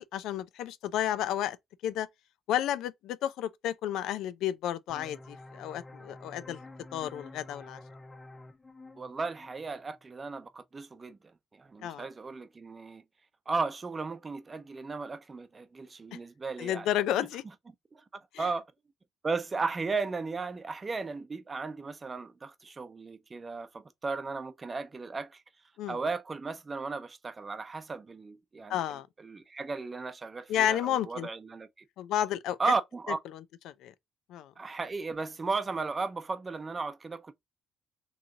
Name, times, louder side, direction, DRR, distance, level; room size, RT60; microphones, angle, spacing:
voice 1, 0.0-1.6 1.8-2.1 2.5-6.6 6.9-7.8 11.8-12.1 16.6-17.4 18.3-18.5 25.8-26.0 28.7-29.1 30.5-31.3 32.0-32.7 33.7-33.9 34.3-34.5, left 11 dB, 90° left, 0.4 m, -31 dB
sound 1, 4.9-10.3, left 2 dB, 20° left, 0.5 m, -49 dB
voice 2, 9.0-11.2 11.5-13.0 13.5-16.9 17.2-17.3 17.7-18.0 18.4-18.7 19.2-25.4 25.9-28.8 29.2-31.8 32.6-33.2 34.6-37.3, right 4 dB, 30° right, 0.6 m, -35 dB
3.1 x 2.7 x 3.5 m
cardioid pair, 90°, 0 cm